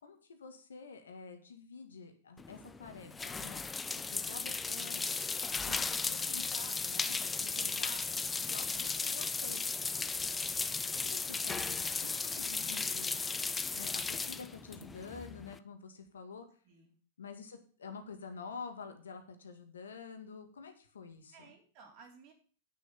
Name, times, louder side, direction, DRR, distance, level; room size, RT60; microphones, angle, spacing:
voice 1, 0.0-3.6 3.9-5.2 5.6-8.0 8.4-9.7 10.8-16.5 17.2-21.3, left 5 dB, 80° left, 6 dB, 1.9 m, -48 dB
sound 1, 2.4-15.6, left 4 dB, 15° left, 0.6 m, -36 dB
voice 2, 10.9-11.5 16.6-17.0 21.3-22.3, right 5 dB, 45° right, 2 dB, 3.9 m, -58 dB
9.2 x 6.7 x 7.2 m, 0.41 s
hypercardioid pair, 100°, 0 cm